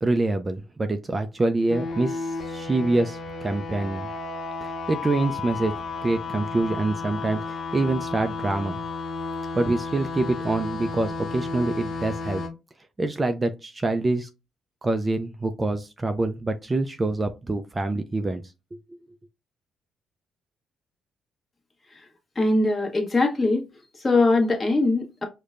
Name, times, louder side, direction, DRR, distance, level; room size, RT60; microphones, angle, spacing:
voice 1, 0.0-4.1 4.6-5.7 6.0-8.8 9.6-12.4 13.0-14.3 14.8-18.4 18.7-18.8, right 2 dB, 25° right, 0.3 m, -26 dB
sound 1, 1.7-12.5, left 4 dB, 60° left, 0.8 m, -33 dB
voice 2, 22.3-23.7 24.0-25.2, left 2 dB, 30° left, 1.1 m, -22 dB
4.9 x 2.1 x 2.4 m
cardioid pair, 90°, 0 cm